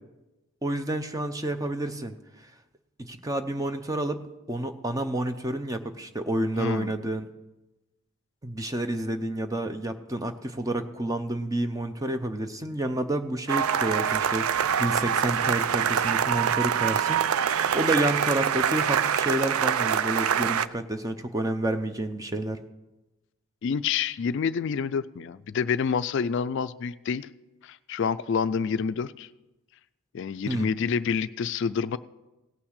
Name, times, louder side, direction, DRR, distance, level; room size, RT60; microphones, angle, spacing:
voice 1, 0.6-2.1 3.0-4.2 4.5-7.3 8.4-17.2 17.7-22.6 30.5-30.7, right 1 dB, 15° right, 8 dB, 0.6 m, -29 dB
voice 2, 6.6-7.0 23.6-27.3 27.6-29.3 30.1-32.0, left 6 dB, 55° left, 14 dB, 0.3 m, -28 dB
sound 1, 13.5-20.7, right 8 dB, 80° right, 0.4 m, -25 dB
sound 2, 13.7-20.7, right 2 dB, 60° right, 1.4 m, -50 dB
17.0 x 6.0 x 6.5 m, 1.0 s
head